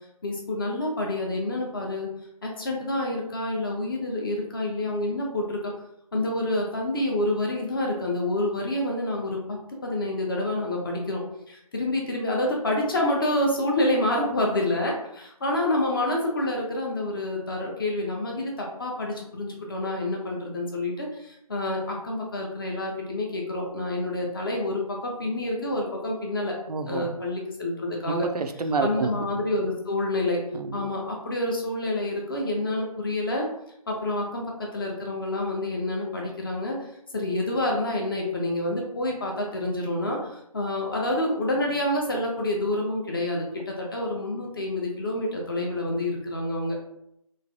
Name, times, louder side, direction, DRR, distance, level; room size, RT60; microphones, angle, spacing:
voice 1, 0.2-2.1 2.4-5.7 6.1-9.6 9.8-11.2 11.5-26.6 26.8-28.3 28.8-30.4 30.7-33.5 33.9-46.8, left 1 dB, 35° left, -1 dB, 0.5 m, -28 dB
voice 2, 26.7-27.1 28.0-29.4 30.5-30.9, right 4 dB, 90° right, 7 dB, 0.4 m, -29 dB
3.1 x 2.3 x 2.6 m, 0.78 s
figure-of-eight pair, 155°, 20 cm